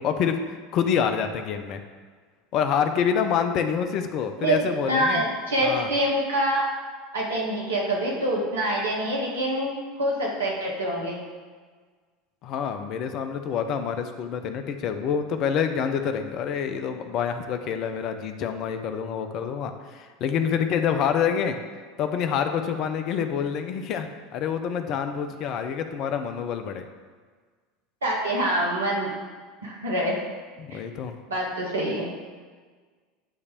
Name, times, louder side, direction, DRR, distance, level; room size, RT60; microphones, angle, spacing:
voice 1, 0.0-1.8 2.5-5.2 5.6-5.9 12.4-21.6 22.0-26.9 30.6-31.2, left 7 dB, 50° left, 7 dB, 0.8 m, -27 dB
voice 2, 4.4-6.7 7.1-11.2 28.0-29.1 29.6-30.2 30.7-30.8 31.3-32.1, right 1 dB, 80° right, -3 dB, 2.0 m, -25 dB
9.6 x 3.3 x 6.8 m, 1.5 s
hypercardioid pair, 80°, 0 cm